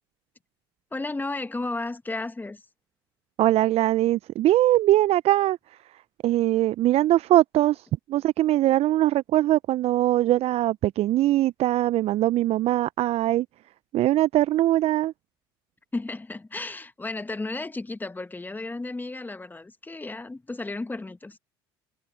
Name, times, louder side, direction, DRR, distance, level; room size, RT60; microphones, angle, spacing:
voice 1, 0.9-2.6 15.9-21.4, left 2 dB, 15° left, 1.7 m, -33 dB
voice 2, 3.4-5.6 6.2-13.5 13.9-15.1, right 14 dB, 50° right, 0.6 m, -21 dB
hypercardioid pair, 65°, 13 cm